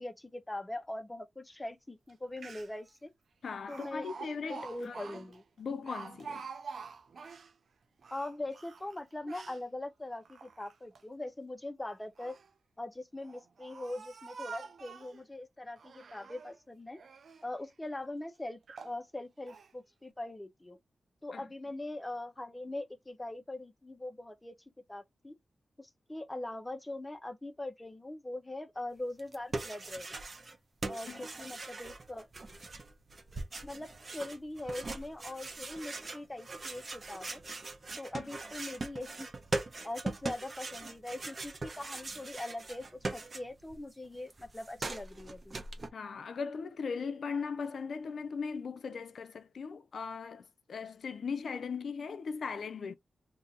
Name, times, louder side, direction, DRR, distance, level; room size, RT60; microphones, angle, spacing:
voice 1, 0.0-3.1 3.7-4.1 4.5-5.4 8.1-12.4 12.8-17.0 17.4-20.8 21.2-24.6 24.9-25.4 25.8-30.1 30.9-32.3 33.6-37.4 38.0-39.3 39.8-45.6, left 2 dB, 20° left, 0.8 m, -42 dB
Speech, 2.1-2.2 2.4-2.9 3.7-7.5 8.0-9.6 10.2-11.0 11.9-12.5 13.2-15.2 15.8-16.6 17.0-17.5 18.0-18.1 18.7-19.0 19.5-19.7, right 5 dB, 70° right, 0.4 m, -47 dB
voice 2, 3.4-4.9 5.6-6.5 21.3-21.5 31.1-31.2 38.1-38.3 45.9-52.9, left 5 dB, 75° left, 0.5 m, -38 dB
sound 1, 29.2-30.6 30.8-43.8 44.0-45.9, right 3 dB, 45° right, 0.9 m, -41 dB
2.7 x 2.6 x 3.8 m
cardioid pair, 65°, 0 cm